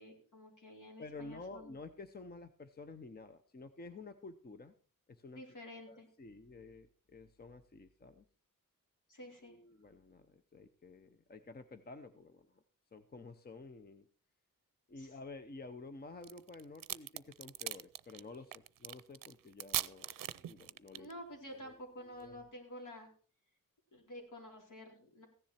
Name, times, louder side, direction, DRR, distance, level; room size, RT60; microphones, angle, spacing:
voice 1, 0.0-1.7 5.3-6.1 9.1-9.5 15.0-15.2 21.0-23.1 23.9-25.3, equal, 65° left, 1 dB, 4.2 m, -50 dB
voice 2, 1.0-4.7 5.1-5.4 5.9-8.2 9.4-12.6 12.9-14.1 14.9-21.1 21.6-21.7 22.0-22.4, left 3 dB, 30° left, 10 dB, 0.7 m, -51 dB
sound 1, 16.2-21.1, right 11 dB, 80° right, 0.5 m, -40 dB
15.5 x 10.5 x 4.3 m, 0.40 s
wide cardioid pair, 160°, 33 cm